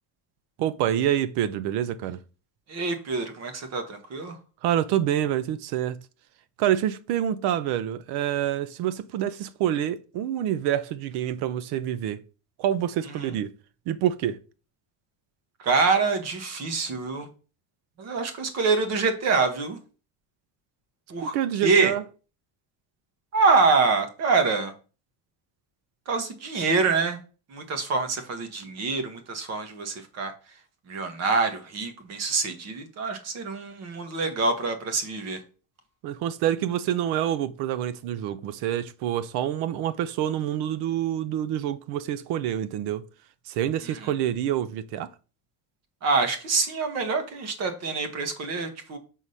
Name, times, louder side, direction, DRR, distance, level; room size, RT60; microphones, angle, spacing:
voice 1, 0.6-2.2 4.6-6.0 6.6-12.2 12.6-13.5 13.9-14.4 21.2-22.0 36.0-43.0 43.5-45.1, right 11 dB, 65° right, 0.8 m, -27 dB
voice 2, 2.7-4.4 13.2-13.3 15.6-17.3 18.0-19.8 21.1-21.3 21.6-21.9 23.3-24.7 26.1-27.2 27.5-30.3 30.9-35.4 43.8-44.1 46.0-49.0, right 4 dB, 35° right, 1.3 m, -25 dB
6.4 x 3.8 x 5.5 m
cardioid pair, 175°, 43 cm